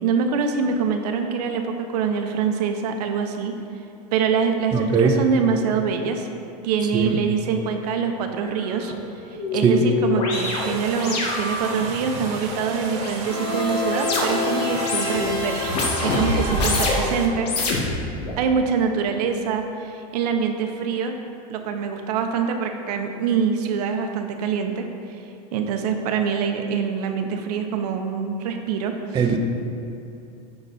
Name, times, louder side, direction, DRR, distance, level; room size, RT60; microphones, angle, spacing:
voice 1, 0.0-3.5 4.1-6.3 6.6-8.9 9.3-15.7 16.0-17.5 18.4-21.2 21.5-24.9 25.5-29.3, right 6 dB, 75° right, 5 dB, 0.8 m, -24 dB
voice 2, 4.7-5.2 6.9-7.2 9.6-9.9 29.1-29.4, right 5 dB, 20° right, 3 dB, 0.5 m, -19 dB
sound 1, 8.4-8.5 8.9-14.5 14.8-15.3 15.6-17.1 17.4-18.3, left 3 dB, 80° left, 1.5 m, -27 dB
sound 2, 10.3-17.3, right 4 dB, 60° right, 1.1 m, -35 dB
sound 3, 13.3-17.6, left 2 dB, 25° left, 1.5 m, -28 dB
10.0 x 4.0 x 4.1 m, 2.7 s
supercardioid pair, 130°, 20 cm